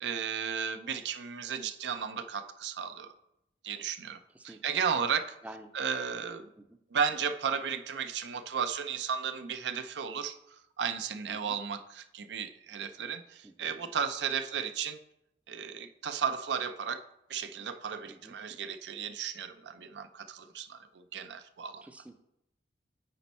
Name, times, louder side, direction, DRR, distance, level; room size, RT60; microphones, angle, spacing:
voice 1, 0.0-3.1 3.6-4.2 4.4-5.3 5.7-6.5 6.9-10.4 10.8-15.0 15.5-17.0 17.3-21.8, right 7 dB, 85° right, 10 dB, 0.5 m, -34 dB
voice 2, 5.4-5.7 6.6-6.8 11.3-11.6 13.4-13.7 18.1-18.3 21.8-22.1, right 1 dB, 10° right, 7 dB, 0.4 m, -49 dB
8.5 x 4.4 x 4.2 m, 0.83 s
head